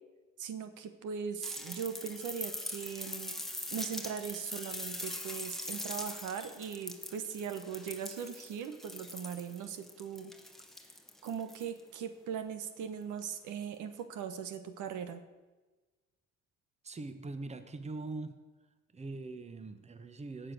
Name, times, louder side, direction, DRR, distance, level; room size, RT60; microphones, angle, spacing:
voice 1, 0.4-3.4 3.7-10.3 11.2-15.2, right 7 dB, 85° right, 10 dB, 1.3 m, -40 dB
sound 1, 1.4-11.8 13.2-13.3, left 1 dB, ahead, 1.2 m, -42 dB
voice 2, 16.8-18.3 18.9-20.5, right 3 dB, 20° right, 10 dB, 1.1 m, -42 dB
18.0 x 6.9 x 6.5 m, 1.2 s
cardioid pair, 115°, 30 cm